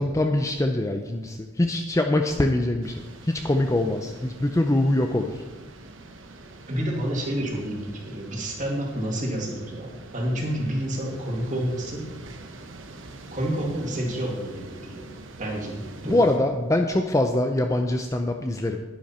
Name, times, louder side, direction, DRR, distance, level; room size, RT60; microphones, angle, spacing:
voice 1, 0.0-5.4 16.0-18.8, left 1 dB, 15° left, 4 dB, 0.5 m, -23 dB
sound 1, 2.8-16.4, right 2 dB, 75° right, 1.0 m, -44 dB
voice 2, 6.7-12.0 13.3-15.1 15.4-16.2, right 1 dB, 40° right, -1 dB, 2.4 m, -29 dB
11.0 x 10.0 x 4.3 m, 1.3 s
head